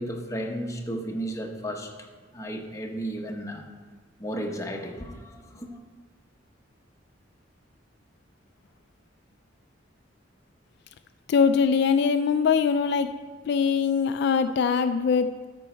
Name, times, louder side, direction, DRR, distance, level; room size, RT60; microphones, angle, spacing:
voice 1, 0.0-1.9 2.3-3.7 4.2-5.7, right 1 dB, 15° left, 1 dB, 1.0 m, -33 dB
voice 2, 11.3-13.2 13.5-15.5, left 6 dB, 60° left, 9 dB, 0.3 m, -22 dB
13.0 x 5.3 x 4.4 m, 1.4 s
head